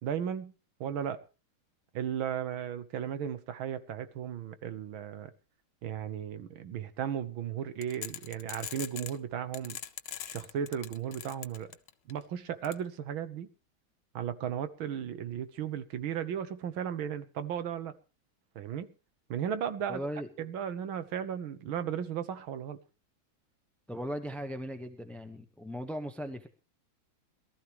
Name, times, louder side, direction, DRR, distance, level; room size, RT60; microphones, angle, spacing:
voice 1, 0.0-0.5 0.8-1.2 1.9-5.3 5.8-9.8 10.2-11.7 12.1-13.5 14.2-17.9 18.6-18.9 19.3-20.0 20.4-22.8, right 9 dB, 85° right, 1.9 m, -35 dB
sound 1, 7.8-9.2 9.5-12.1 12.6-12.7, left 10 dB, 65° left, 1.5 m, -41 dB
voice 2, 19.9-20.3 23.9-26.5, equal, ahead, 0.5 m, -38 dB
22.5 x 13.5 x 3.1 m
omnidirectional pair, 2.2 m